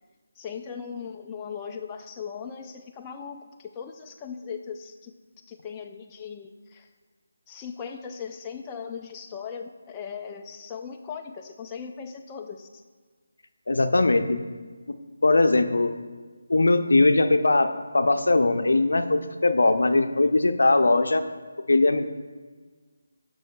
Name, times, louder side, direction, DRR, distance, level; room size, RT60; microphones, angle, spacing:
voice 1, 0.4-5.1 5.5-6.9 7.5-12.8, left 6 dB, 15° left, 2 dB, 0.3 m, -38 dB
voice 2, 13.7-14.4 14.9-15.0 15.2-15.9 16.5-21.2 21.7-22.0, left 2 dB, 80° left, 8 dB, 0.6 m, -20 dB
10.5 x 6.2 x 2.3 m, 1.5 s
figure-of-eight pair, 165°, 0 cm